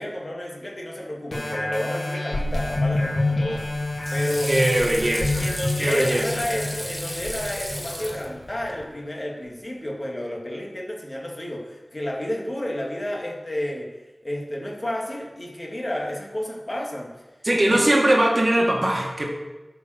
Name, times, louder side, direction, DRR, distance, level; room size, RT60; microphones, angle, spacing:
voice 1, 0.0-3.8 4.1-4.5 4.8-5.0 5.4-13.9 14.2-17.3 17.6-17.8, left 1 dB, 40° left, -1 dB, 2.3 m, -31 dB
sound 1, 1.3-8.5 9.0-9.1, left 2 dB, 85° left, 2.7 m, -28 dB
Water / Sink (filling or washing), 3.4-8.8, equal, 10° left, 1.8 m, -35 dB
voice 2, 4.5-5.4 5.8-6.3 17.4-19.2, right 1 dB, 45° right, 0 dB, 2.0 m, -20 dB
12.0 x 5.8 x 6.5 m, 1.1 s
wide cardioid pair, 55°, 0 cm